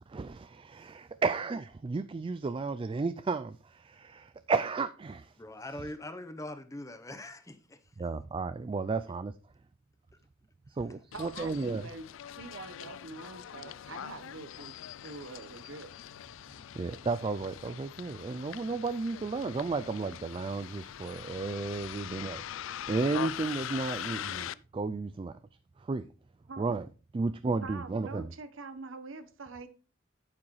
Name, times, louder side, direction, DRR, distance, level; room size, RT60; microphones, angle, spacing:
voice 1, 0.1-5.3 8.0-9.4 10.7-11.9 16.8-25.4 25.8-26.1 26.6-26.9 27.1-28.3, right 4 dB, 25° right, 0.3 m, -33 dB
voice 2, 5.4-8.1, left 1 dB, 15° left, 0.8 m, -42 dB
Bus, 11.1-24.5, left 10 dB, 70° left, 0.4 m, -42 dB
voice 3, 11.1-12.0 12.4-14.8 15.0-15.9 26.5-26.7 27.6-29.7, right 3 dB, 75° right, 1.0 m, -45 dB
8.6 x 8.5 x 3.1 m
head